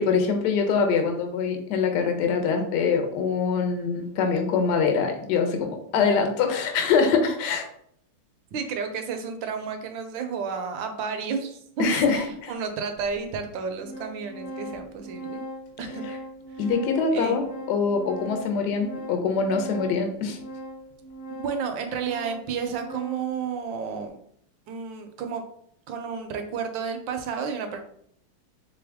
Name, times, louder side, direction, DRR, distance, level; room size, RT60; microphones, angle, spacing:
voice 1, 0.0-7.7 11.8-12.5 16.6-20.4, left 5 dB, 65° left, 5 dB, 1.2 m, -24 dB
voice 2, 8.5-12.2 12.5-15.4 15.8-16.2 16.5-16.7 17.1-17.4 21.3-24.2 24.7-25.4 25.9-27.8, right 6 dB, 75° right, 6 dB, 1.2 m, -31 dB
Organ, 13.1-13.2 13.5-23.4, right 1 dB, 45° left, 1.3 m, -40 dB
3.8 x 3.4 x 3.4 m, 0.68 s
omnidirectional pair, 2.2 m